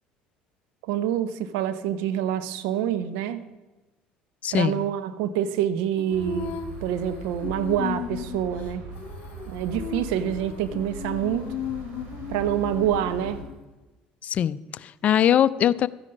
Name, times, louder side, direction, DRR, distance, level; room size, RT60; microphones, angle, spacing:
voice 1, 0.9-3.4 4.5-8.8 9.5-11.5 12.3-13.4, right 10 dB, 85° right, 13 dB, 1.0 m, -26 dB
voice 2, 4.4-4.8 14.2-15.9, left 10 dB, 50° left, 16 dB, 0.5 m, -22 dB
Female singing, 6.0-13.6, left 9 dB, 65° left, 1.3 m, -36 dB
sound 1, 6.1-13.4, right 3 dB, 65° right, 3.2 m, -40 dB
13.0 x 9.9 x 5.3 m, 1.1 s
supercardioid pair, 95°, 3 cm